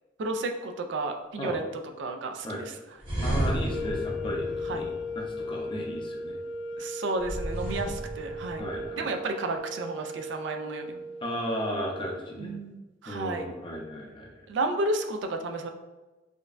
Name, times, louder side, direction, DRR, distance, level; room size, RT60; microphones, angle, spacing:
voice 1, 0.2-1.6 2.0-2.7 4.2-4.3 4.7-4.8 6.8-8.7 8.9-11.1 12.4-13.5 14.5-15.7, right 2 dB, 70° right, 5 dB, 0.4 m, -32 dB
sound 1, 3.0-5.7 7.2-8.9, right 1 dB, 25° right, 1.0 m, -33 dB
voice 2, 3.2-6.4 7.9-8.0 8.6-9.1 11.2-12.5 13.1-14.3, equal, 25° left, -1 dB, 0.6 m, -35 dB
sound 2, 3.6-11.8, left 1 dB, 80° left, 0.3 m, -37 dB
5.1 x 2.2 x 2.4 m, 1.1 s
head